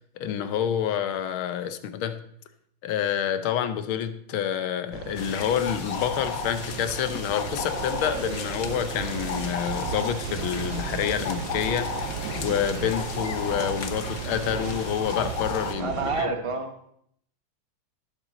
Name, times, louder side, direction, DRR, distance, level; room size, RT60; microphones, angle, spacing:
voice 1, 0.2-2.2 2.8-16.3, left 9 dB, 80° left, 10 dB, 1.6 m, -28 dB
sound 1, 4.9-16.2, right 8 dB, 70° right, 1.4 m, -35 dB
sound 2, 5.2-15.7, left 6 dB, 50° left, 1.2 m, -35 dB
voice 2, 15.8-16.9, right 3 dB, 20° right, 5 dB, 0.9 m, -29 dB
18.0 x 7.5 x 4.0 m, 0.69 s
omnidirectional pair, 2.3 m